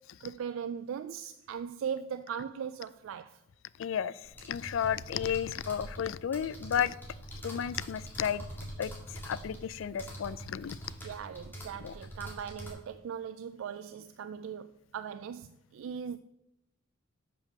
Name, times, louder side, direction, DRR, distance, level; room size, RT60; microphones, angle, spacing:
voice 1, 0.2-3.4 11.0-16.2, right 7 dB, 70° right, 0.3 m, -39 dB
voice 2, 3.8-4.2 4.5-6.9 7.4-8.4 8.8-10.8 11.8-11.9, left 8 dB, 65° left, 0.3 m, -33 dB
sound 1, 4.2-12.7, equal, 10° left, 2.0 m, -44 dB
6.8 x 5.4 x 6.5 m
head